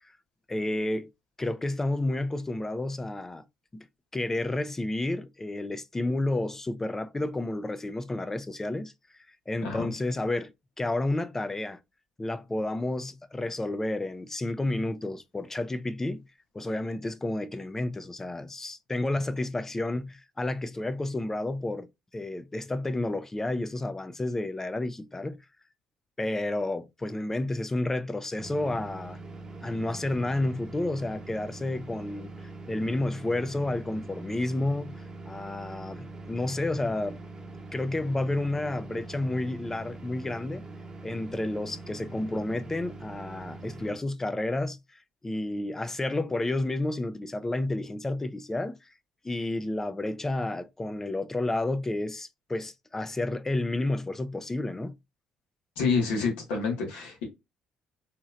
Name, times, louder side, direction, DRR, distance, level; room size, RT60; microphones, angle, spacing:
voice 1, 0.5-1.1 1.4-3.4 3.7-3.9 4.1-8.9 9.5-10.5 10.8-11.8 12.2-16.2 16.5-21.9 22.1-25.4 26.2-29.2 29.6-37.2 37.7-40.6 41.0-48.9 49.2-55.0, left 2 dB, 20° left, 0.4 m, -31 dB
sound 1, 28.4-44.0, right 3 dB, 30° right, 0.8 m, -43 dB
voice 2, 55.7-57.2, left 4 dB, 90° left, 1.6 m, -28 dB
4.2 x 3.1 x 2.5 m
supercardioid pair, 80°, 2 cm